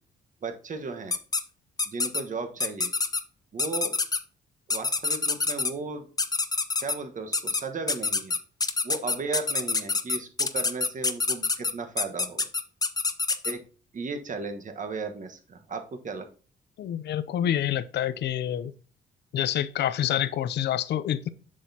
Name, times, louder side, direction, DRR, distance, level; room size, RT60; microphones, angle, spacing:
voice 1, 0.4-1.1 1.9-2.9 3.5-4.0 4.7-6.0 6.8-8.3 8.8-12.5 13.4-13.6 13.9-16.3, right 4 dB, 40° right, 1.3 m, -35 dB
sound 1, 1.1-1.4 1.8-2.2 2.6-3.2 3.6-4.2 4.7-5.7 6.2-7.0 7.3-7.6 7.9-13.5, left 3 dB, 20° left, 0.7 m, -26 dB
voice 2, 16.8-18.7 19.3-21.3, left 11 dB, 60° left, 0.5 m, -27 dB
7.4 x 6.3 x 2.8 m
cardioid pair, 90°, 20 cm